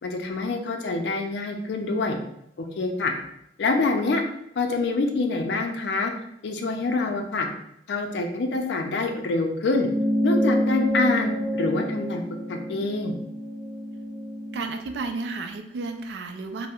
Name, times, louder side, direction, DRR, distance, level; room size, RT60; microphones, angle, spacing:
voice 1, 0.0-2.2 2.6-3.1 3.6-4.2 4.6-6.1 6.4-7.5 7.9-9.9 10.2-12.2 12.5-13.2, left 3 dB, 70° left, 4 dB, 0.4 m, -26 dB
sound 1, 9.8-14.6, equal, 10° right, 1.0 m, -27 dB
voice 2, 14.5-16.7, right 3 dB, 70° right, 6 dB, 0.3 m, -32 dB
4.3 x 2.0 x 2.3 m, 0.77 s
head